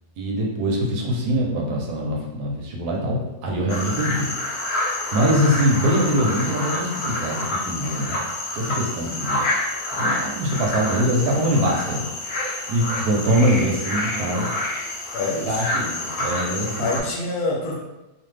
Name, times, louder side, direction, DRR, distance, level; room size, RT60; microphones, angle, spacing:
voice 1, 0.2-4.3 5.1-8.2 8.5-9.4 10.0-12.1 12.7-14.5 15.5-16.9, equal, 75° right, -1 dB, 1.1 m, -23 dB
sound 1, 3.7-17.0, left 1 dB, 85° left, 0.5 m, -28 dB
voice 2, 13.3-13.7 15.1-15.6 16.8-17.8, left 2 dB, 70° left, -2 dB, 1.1 m, -26 dB
2.6 x 2.5 x 3.2 m, 1.0 s
omnidirectional pair, 1.8 m